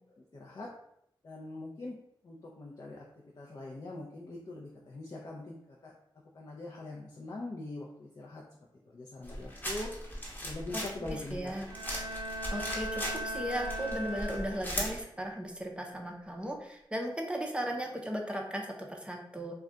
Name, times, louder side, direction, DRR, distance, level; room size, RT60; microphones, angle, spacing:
voice 1, 0.2-0.7 1.2-2.0 2.2-3.1 3.4-5.9 6.3-8.4 8.9-9.9 10.4-11.5, left 2 dB, 45° left, -3 dB, 0.5 m, -43 dB
sound 1, 9.2-15.0, equal, 20° left, 0.9 m, -39 dB
voice 2, 11.0-11.7 12.5-19.5, equal, 10° right, 1 dB, 0.5 m, -36 dB
Bowed string instrument, 11.6-15.0, equal, 75° right, 0.4 m, -39 dB
2.3 x 2.2 x 3.7 m, 0.77 s
wide cardioid pair, 75°, 9 cm